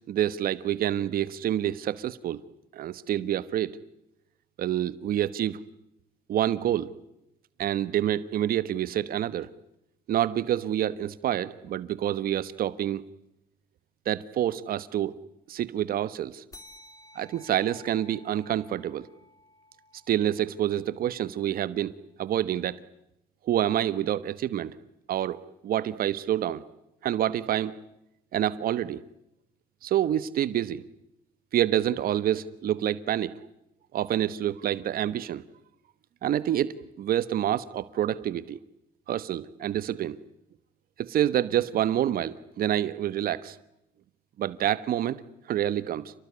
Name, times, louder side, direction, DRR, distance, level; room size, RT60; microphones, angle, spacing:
voice 1, 0.0-2.4 2.7-3.8 4.6-5.6 6.3-6.9 7.6-9.5 10.1-13.0 14.0-15.1 15.5-16.4 17.1-19.1 20.1-21.9 22.2-22.8 23.5-24.7 25.1-26.6 27.0-27.7 28.3-29.0 29.8-30.8 31.5-33.3 33.9-35.4 36.2-38.6 39.1-40.2 41.0-43.6 44.4-45.2 45.5-46.1, right 11 dB, 60° right, 16 dB, 1.2 m, -27 dB
sound 1, 16.5-21.4, left 1 dB, 20° left, 3.2 m, -54 dB
29.5 x 20.0 x 9.8 m, 0.84 s
cardioid pair, 110°, 17 cm